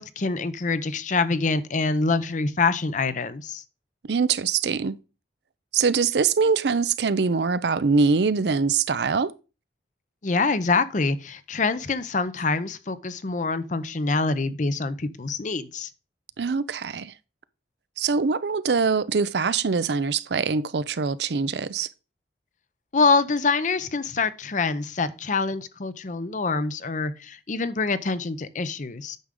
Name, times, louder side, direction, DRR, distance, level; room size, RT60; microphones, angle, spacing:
voice 1, 0.0-3.6 10.2-15.9 22.9-29.2, left 4 dB, 45° left, 0.7 m, -25 dB
voice 2, 4.1-5.0 5.7-9.3 16.4-17.1 18.0-21.9, right 5 dB, 70° right, 0.5 m, -23 dB
9.3 x 6.3 x 3.7 m
head